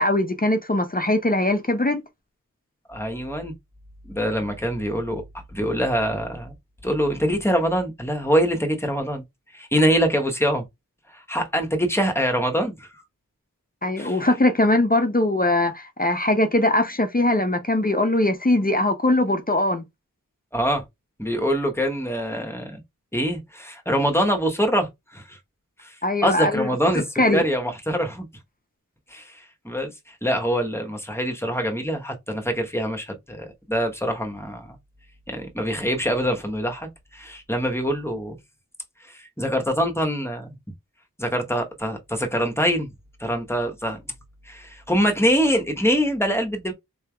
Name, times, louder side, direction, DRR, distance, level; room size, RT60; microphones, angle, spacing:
voice 1, 0.0-2.0 13.8-19.8 26.0-26.7 27.2-27.4, left 1 dB, 25° left, 0.6 m, -21 dB
voice 2, 2.9-3.5 4.1-5.2 5.5-6.5 6.8-9.2 9.5-10.6 11.1-12.9 14.0-14.2 20.5-20.8 21.2-22.8 23.1-25.4 25.8-26.0 26.2-27.0 27.3-28.3 29.1-34.8 35.3-38.4 39.0-40.6 41.2-42.9 43.2-44.0 44.5-46.7, equal, 10° left, 1.0 m, -24 dB
4.0 x 3.3 x 2.3 m
wide cardioid pair, 65°, 33 cm